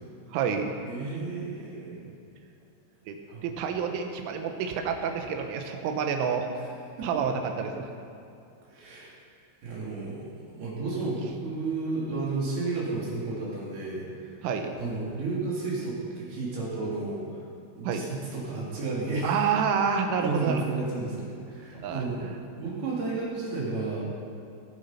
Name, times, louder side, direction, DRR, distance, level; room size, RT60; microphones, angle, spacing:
voice 1, 0.3-0.8 1.9-2.1 3.1-6.5 7.0-7.9 10.7-10.9 14.4-14.7 17.9-18.1 19.2-20.7 21.8-22.4, right 6 dB, 80° right, 4 dB, 3.4 m, -29 dB
voice 2, 0.9-2.0 3.3-3.4 7.0-7.2 8.7-9.1 9.6-14.3 14.8-17.4 17.7-19.4 20.2-22.3 22.6-24.0, right 3 dB, 55° right, -6 dB, 4.3 m, -32 dB
20.0 x 7.0 x 5.7 m, 2.5 s
omnidirectional pair, 5.7 m